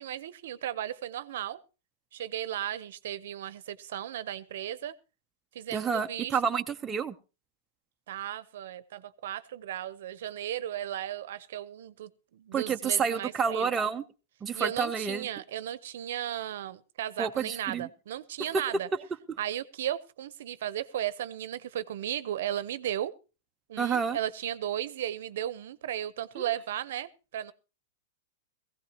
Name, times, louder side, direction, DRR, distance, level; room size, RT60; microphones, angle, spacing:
voice 1, 0.0-1.6 2.1-4.9 5.5-6.4 8.1-13.7 14.5-18.9 19.4-23.1 23.7-27.5, right 11 dB, 70° right, 0.8 m, -35 dB
voice 2, 5.7-7.1 12.5-14.0 14.4-15.3 17.2-17.9 23.8-24.2 26.4-26.5, right 6 dB, 15° right, 0.6 m, -29 dB
18.5 x 15.5 x 2.9 m
supercardioid pair, 150°, 0 cm